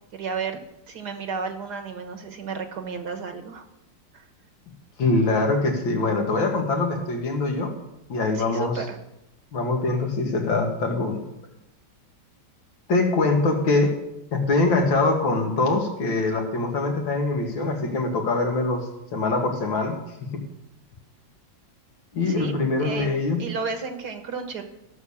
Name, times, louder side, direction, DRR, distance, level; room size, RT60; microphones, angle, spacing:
voice 1, 0.1-0.6 0.9-3.7 4.1-4.3 8.3-9.0 22.3-22.5 22.8-24.6, right 5 dB, 60° right, 7 dB, 1.8 m, -33 dB
voice 2, 5.0-7.7 8.1-8.7 9.5-11.2 12.9-13.9 14.3-18.8 19.1-19.9 20.3-20.4 22.1-23.4, left 3 dB, 85° left, 2 dB, 2.7 m, -23 dB
15.5 x 6.7 x 7.1 m, 0.87 s
omnidirectional pair, 2.1 m